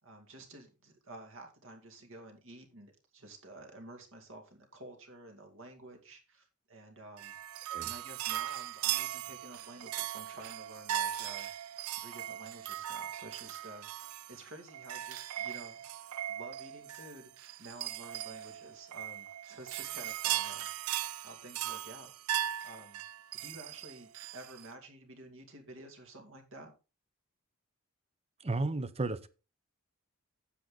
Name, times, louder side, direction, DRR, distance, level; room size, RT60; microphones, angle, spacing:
voice 1, 0.0-11.5 12.0-13.9 14.3-17.3 17.6-20.7 21.2-22.1 22.6-23.0 23.3-26.7, right 2 dB, 60° right, 2.5 m, -51 dB
sound 1, 7.2-24.7, right 12 dB, 85° right, 0.5 m, -38 dB
voice 2, 28.4-29.3, right 2 dB, 30° right, 0.7 m, -33 dB
9.9 x 7.8 x 3.9 m
head